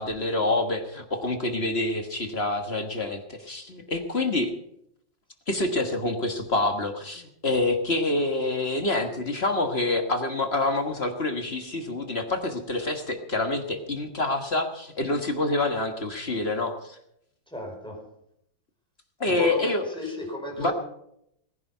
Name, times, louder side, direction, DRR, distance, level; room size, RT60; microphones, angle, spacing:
voice 1, 0.0-4.5 5.5-17.0 19.2-19.9 20.6-20.7, left 2 dB, 35° left, 5 dB, 1.5 m, -27 dB
voice 2, 17.5-18.0 19.2-20.7, equal, ahead, 0 dB, 4.8 m, -35 dB
19.0 x 10.5 x 5.6 m, 0.76 s
omnidirectional pair, 2.1 m